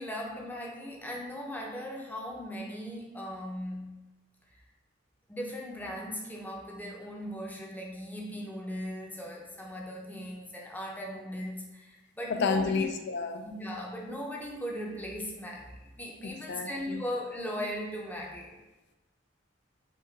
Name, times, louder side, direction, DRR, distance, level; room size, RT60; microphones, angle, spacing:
voice 1, 0.0-4.0 5.3-12.9 13.4-18.6, equal, 10° left, -2 dB, 0.7 m, -38 dB
voice 2, 12.3-13.4 16.2-17.0, left 4 dB, 60° left, 7 dB, 0.4 m, -30 dB
5.1 x 2.5 x 3.9 m, 1.1 s
head